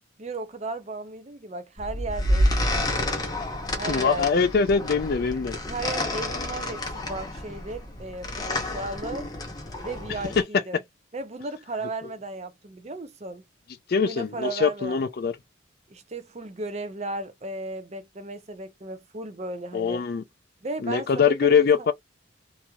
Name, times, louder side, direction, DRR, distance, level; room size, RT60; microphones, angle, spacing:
voice 1, 0.2-3.4 3.7-4.4 5.7-9.3 9.8-10.8 11.1-13.4 14.0-15.0 15.9-20.0 20.6-21.7, right 2 dB, 35° right, 0.5 m, -35 dB
sound 1, 1.8-10.4, left 1 dB, 20° left, 0.8 m, -29 dB
voice 2, 3.9-5.5 10.4-10.5 13.9-15.3 19.7-20.2 20.8-21.9, left 6 dB, 50° left, 0.4 m, -22 dB
3.0 x 2.7 x 2.3 m
head